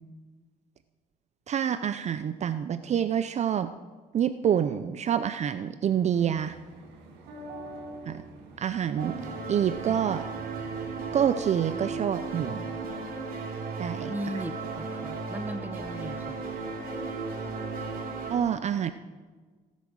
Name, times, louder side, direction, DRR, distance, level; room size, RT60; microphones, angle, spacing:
voice 1, 1.5-3.7 4.1-6.5 8.1-8.2 8.6-9.1 9.5-10.2 11.1-12.6 13.8-14.1 18.3-18.9, right 9 dB, 40° right, 12 dB, 0.5 m, -27 dB
sound 1, 6.1-11.8, right 2 dB, 90° right, 2.3 m, -45 dB
sound 2, 9.0-18.4, right 4 dB, 60° right, 3.2 m, -35 dB
voice 2, 14.1-16.4, right 1 dB, 10° right, 11 dB, 0.9 m, -37 dB
17.0 x 8.4 x 6.3 m, 1.4 s
cardioid pair, 110°, 17 cm